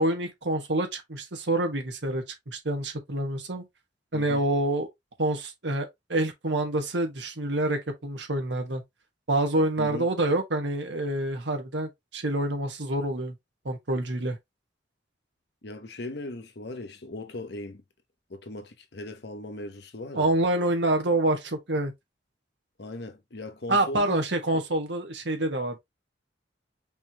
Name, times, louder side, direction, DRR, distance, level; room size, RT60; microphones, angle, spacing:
voice 1, 0.0-3.6 4.1-4.9 5.2-8.8 9.3-13.3 13.6-14.4 20.1-21.9 23.7-25.8, right 1 dB, 70° right, 1.4 m, -27 dB
voice 2, 4.1-4.4 9.8-10.1 15.6-17.8 18.3-20.3 22.8-24.2 24.5-24.6, left 2 dB, 60° left, 0.9 m, -38 dB
5.4 x 3.2 x 2.9 m
head